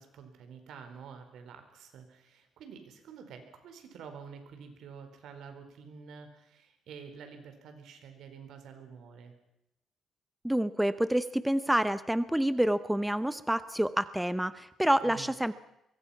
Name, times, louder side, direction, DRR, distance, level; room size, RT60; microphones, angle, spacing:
voice 1, 0.0-9.3 15.0-15.3, right 6 dB, 75° right, 7 dB, 4.5 m, -48 dB
voice 2, 10.4-15.5, right 1 dB, 5° right, 14 dB, 0.8 m, -28 dB
24.5 x 23.0 x 5.8 m, 0.86 s
cardioid pair, 110°, 0 cm